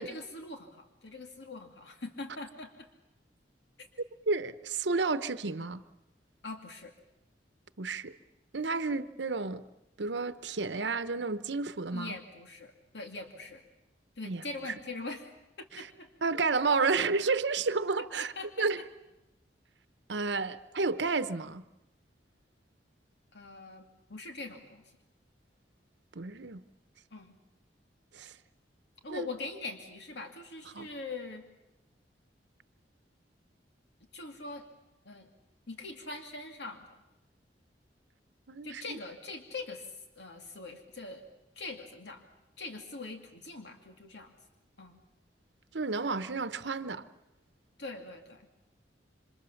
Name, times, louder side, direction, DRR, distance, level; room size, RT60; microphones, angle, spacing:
voice 1, 0.0-2.9 6.4-6.9 11.9-13.6 14.2-15.3 15.6-16.1 18.2-18.8 23.3-24.9 27.1-27.4 29.0-31.5 34.1-34.7 35.0-35.3 35.7-37.0 38.6-39.9 40.2-41.2 41.6-42.2 42.6-44.3 44.8-45.0 47.8-48.5, left 3 dB, 70° left, 2.4 m, -42 dB
voice 2, 4.3-5.8 7.8-8.1 8.5-9.6 10.0-12.1 14.2-14.4 15.7-15.9 16.2-18.3 18.6-18.8 20.1-21.6 26.1-26.6 28.1-28.3 29.1-29.3 30.7-30.9 38.5-39.0 45.7-47.0, right 4 dB, 80° right, 0.9 m, -31 dB
27.0 x 26.0 x 7.2 m
head